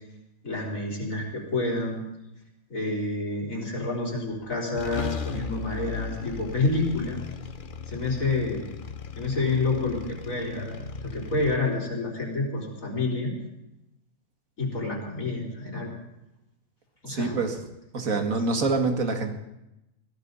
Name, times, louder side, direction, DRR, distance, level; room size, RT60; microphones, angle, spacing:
voice 1, 0.4-2.0 2.7-7.2 7.9-8.7 9.2-13.3 14.6-15.9 17.0-17.4, left 2 dB, 75° left, -2 dB, 4.3 m, -28 dB
sound 1, 4.3-4.4 4.8-11.6, left 6 dB, 45° left, 0.9 m, -36 dB
voice 2, 17.0-17.6 17.9-19.3, right 3 dB, 80° right, 4 dB, 2.3 m, -26 dB
22.0 x 15.5 x 4.1 m, 0.89 s
omnidirectional pair, 1.4 m